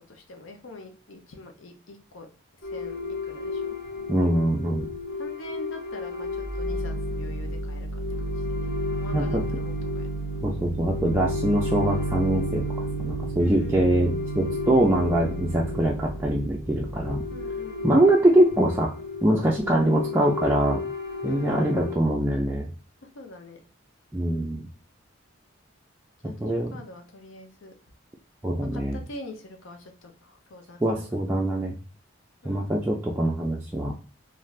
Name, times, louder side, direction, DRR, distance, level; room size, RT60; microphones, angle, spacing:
voice 1, 0.0-2.3 2.7-3.8 5.2-10.2 13.4-14.1 17.3-17.8 21.2-21.7 23.0-23.6 26.2-27.7 28.7-31.1 32.4-32.7, left 2 dB, 70° left, 4 dB, 0.6 m, -44 dB
sound 1, 2.6-22.0, left 1 dB, 50° left, 1.1 m, -32 dB
voice 2, 4.1-4.9 9.1-9.4 10.4-12.6 13.0-17.2 17.8-18.9 19.2-20.8 21.2-22.7 24.1-24.7 26.2-26.7 28.4-29.0 30.8-31.8 32.4-33.9, right 1 dB, 10° right, -4 dB, 0.3 m, -23 dB
3.2 x 2.5 x 2.3 m, 0.38 s
head